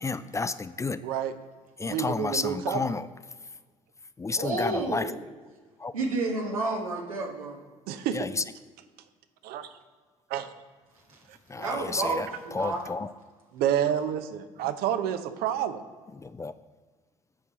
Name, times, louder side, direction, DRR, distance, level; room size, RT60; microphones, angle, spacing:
voice 1, 0.0-1.0 1.8-3.1 4.2-5.1 5.8-5.9 8.1-8.4 11.5-13.1 16.2-16.5, left 3 dB, 15° left, 13 dB, 0.4 m, -31 dB
voice 2, 1.0-1.3 1.8-2.9 7.9-8.2 9.4-9.7 10.3-10.5 11.3-11.4 13.5-15.8, right 9 dB, 60° right, 11 dB, 0.7 m, -29 dB
voice 3, 4.4-5.2 5.9-7.6 11.6-12.8, right 3 dB, 90° right, -1 dB, 1.3 m, -30 dB
8.6 x 4.6 x 5.5 m, 1.4 s
hypercardioid pair, 55°, 17 cm